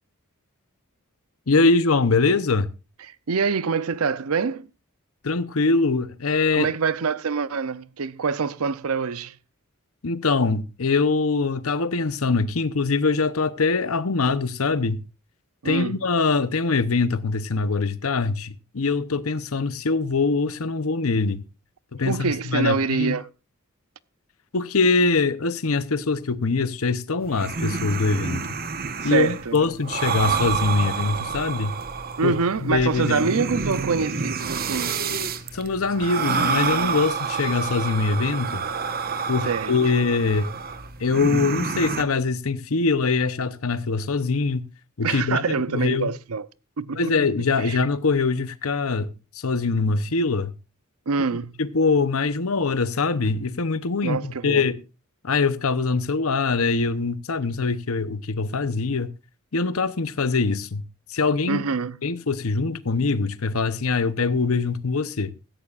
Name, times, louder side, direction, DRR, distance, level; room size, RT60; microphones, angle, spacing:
voice 1, 1.5-2.7 5.2-6.7 10.0-15.0 15.6-21.4 21.9-23.2 24.5-28.4 29.0-31.7 32.2-32.3 32.6-33.2 35.5-38.6 39.3-40.5 41.0-44.7 45.0-45.4 45.7-46.1 47.0-49.1 49.3-50.5 51.6-54.8 55.2-59.1 59.5-60.8 61.1-61.6 62.0-65.3, left 4 dB, 70° left, 0.9 m, -23 dB
voice 2, 3.0-4.7 6.5-9.3 15.6-16.0 22.0-23.3 29.0-29.6 32.2-35.0 39.4-39.8 45.0-46.5 46.8-47.3 47.6-47.8 51.1-51.5 54.0-54.6 61.5-62.0, right 5 dB, 75° right, 0.7 m, -25 dB
sound 1, 27.2-42.0, right 5 dB, 45° right, 1.2 m, -28 dB
17.0 x 14.0 x 2.5 m
head